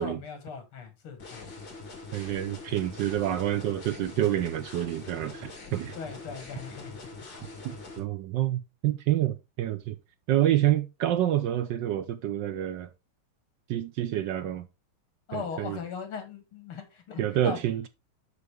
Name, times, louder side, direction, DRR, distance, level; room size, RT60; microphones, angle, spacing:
voice 1, 0.0-1.4 5.9-7.0 15.3-17.6, left 6 dB, 75° left, 2.7 m, -39 dB
sound 1, 1.2-8.0, left 3 dB, 60° left, 3.0 m, -44 dB
voice 2, 2.1-5.9 7.6-10.0 10.3-12.9 13.7-14.7 15.3-15.8 17.2-17.9, right 12 dB, 75° right, 1.1 m, -28 dB
6.6 x 6.6 x 3.4 m
omnidirectional pair, 2.4 m